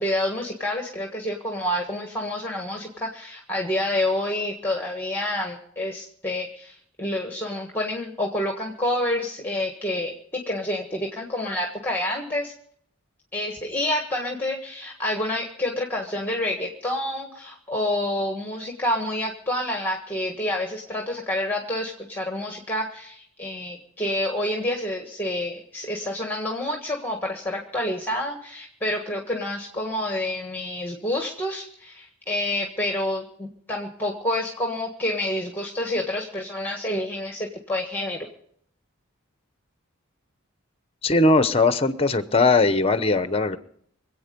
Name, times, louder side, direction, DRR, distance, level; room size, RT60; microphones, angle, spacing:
voice 1, 0.0-10.1 10.5-12.5 13.3-38.3, left 1 dB, 10° left, 2 dB, 1.5 m, -28 dB
voice 2, 41.0-43.6, left 3 dB, 25° left, 12 dB, 0.9 m, -19 dB
25.5 x 8.6 x 5.3 m, 0.65 s
head